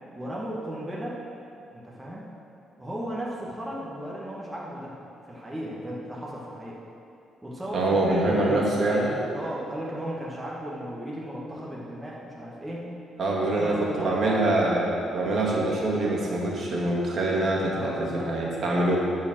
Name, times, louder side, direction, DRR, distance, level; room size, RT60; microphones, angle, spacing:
voice 1, 0.1-1.2 1.7-2.3 2.8-4.9 5.2-6.8 7.4-8.7 9.3-13.0 13.6-14.4 17.7-18.3 18.7-18.9, equal, 15° right, -5 dB, 1.7 m, -35 dB
voice 2, 7.7-9.2 13.2-13.8 14.0-19.0, right 2 dB, 50° right, -4 dB, 2.2 m, -24 dB
12.5 x 4.8 x 6.2 m, 2.7 s
cardioid pair, 90°, 0 cm